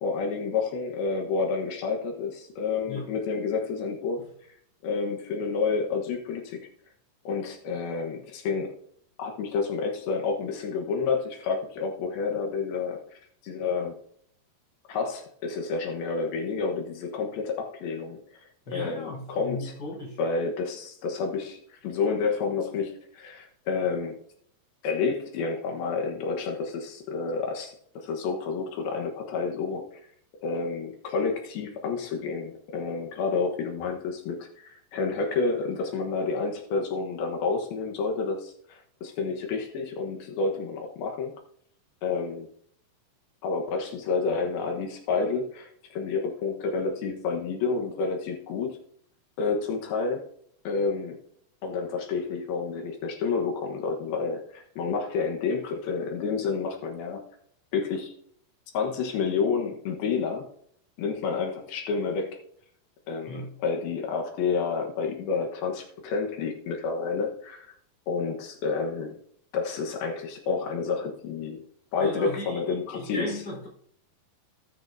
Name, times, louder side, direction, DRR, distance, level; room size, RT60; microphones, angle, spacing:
voice 1, 0.0-4.2 4.8-6.7 7.2-8.8 9.2-13.0 13.4-14.0 14.9-18.2 18.7-19.7 20.2-24.2 24.8-29.8 30.4-34.4 34.6-41.3 42.0-42.5 43.4-48.8 49.4-50.2 50.6-51.2 51.6-57.2 57.7-58.1 58.7-60.5 61.0-62.4 63.1-67.7 68.1-69.2 69.5-71.6 71.9-73.4, left 4 dB, 90° left, 3.1 m, -29 dB
voice 2, 18.7-20.2 63.3-63.5 72.0-73.7, left 1 dB, 30° left, 4.5 m, -36 dB
19.0 x 6.5 x 2.6 m
omnidirectional pair, 4.1 m